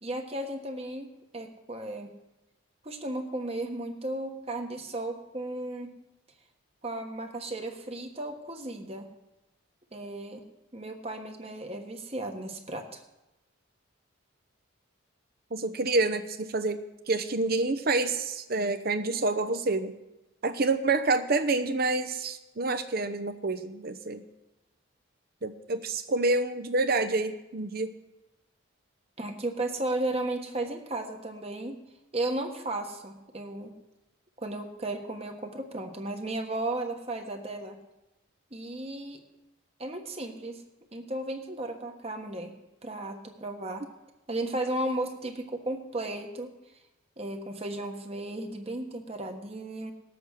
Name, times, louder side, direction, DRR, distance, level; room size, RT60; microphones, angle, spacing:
voice 1, 0.0-2.1 2.8-5.9 6.8-9.1 9.9-10.4 10.7-13.0 29.2-31.8 32.1-33.7 34.4-37.8 38.5-39.2 39.8-40.6 40.9-42.5 42.8-43.9 44.3-46.6 47.2-49.9, right 2 dB, 30° right, 4 dB, 1.3 m, -34 dB
voice 2, 15.5-16.8 17.1-19.9 20.4-24.2 25.4-27.9, right 3 dB, 45° right, 9 dB, 0.7 m, -28 dB
18.5 x 7.9 x 6.4 m, 0.97 s
head